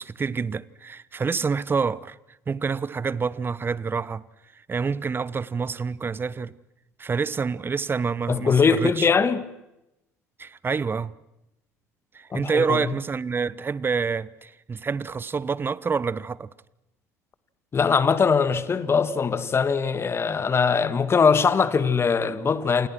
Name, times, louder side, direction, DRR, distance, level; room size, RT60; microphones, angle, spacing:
voice 1, 0.0-2.2 2.5-4.2 4.5-6.5 7.0-9.1 10.4-11.1 12.1-16.5, right 5 dB, 25° right, 1.1 m, -27 dB
voice 2, 8.3-9.4 12.3-12.9 17.7-22.9, left 5 dB, 30° left, 2.1 m, -21 dB
28.5 x 28.0 x 6.2 m
figure-of-eight pair, 60°, 8 cm